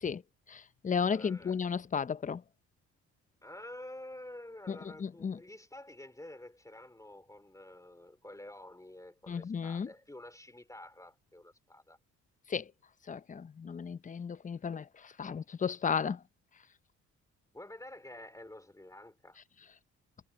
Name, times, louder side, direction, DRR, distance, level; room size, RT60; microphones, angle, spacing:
voice 1, 0.5-2.4 4.7-5.4 9.3-9.9 12.5-12.6 13.1-16.2, left 6 dB, 25° left, 0.6 m, -34 dB
voice 2, 1.1-1.6 3.4-12.0 17.5-19.4, left 1 dB, 10° left, 3.6 m, -49 dB
cardioid pair, 90°, 30 cm